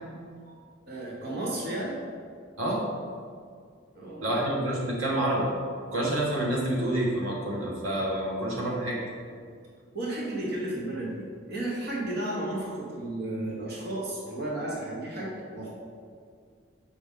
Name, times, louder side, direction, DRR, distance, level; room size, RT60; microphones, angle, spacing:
voice 1, 0.9-2.0 3.9-4.6 9.9-15.7, right 1 dB, 50° right, -4 dB, 1.0 m, -33 dB
voice 2, 4.2-5.5 5.9-9.0, right 1 dB, 90° right, -3 dB, 1.4 m, -28 dB
6.9 x 5.1 x 3.7 m, 2.2 s
head